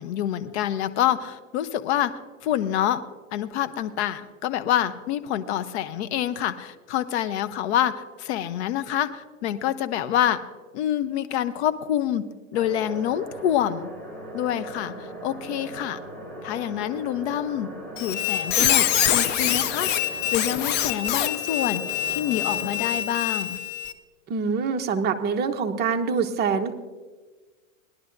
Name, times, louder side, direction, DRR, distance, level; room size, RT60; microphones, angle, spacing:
voice 1, 0.0-2.1 2.4-3.0 3.3-10.4 10.7-12.3 12.5-13.9 14.3-16.0 16.4-17.7 18.0-21.8 22.1-23.6, left 11 dB, 55° left, 11 dB, 0.9 m, -27 dB
sound 1, 12.5-23.0, right 1 dB, 5° left, 3.4 m, -39 dB
Squeak, 18.0-23.9, left 11 dB, 25° left, 0.5 m, -25 dB
voice 2, 24.3-26.7, right 5 dB, 25° right, 5 dB, 0.9 m, -25 dB
20.0 x 11.0 x 2.6 m, 1.3 s
hypercardioid pair, 120°, 40 cm